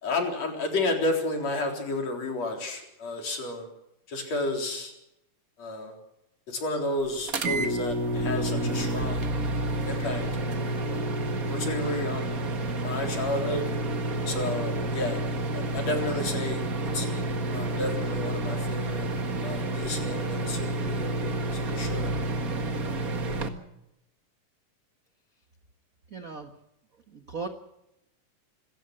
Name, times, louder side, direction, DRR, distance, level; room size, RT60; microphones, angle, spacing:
voice 1, 0.0-3.7 4.1-4.9 5.6-5.9 6.5-9.2 9.9-10.8 11.5-12.4 12.7-13.7 14.3-15.2 15.5-17.1 17.5-19.1 19.4-22.1, left 2 dB, 50° left, 2 dB, 5.0 m, -31 dB
sound 1, 7.3-23.5, right 2 dB, 40° right, 1.4 m, -29 dB
voice 2, 26.1-26.5 26.9-27.5, right 4 dB, 65° right, 6 dB, 0.8 m, -38 dB
26.5 x 15.0 x 7.7 m, 0.86 s
omnidirectional pair, 3.9 m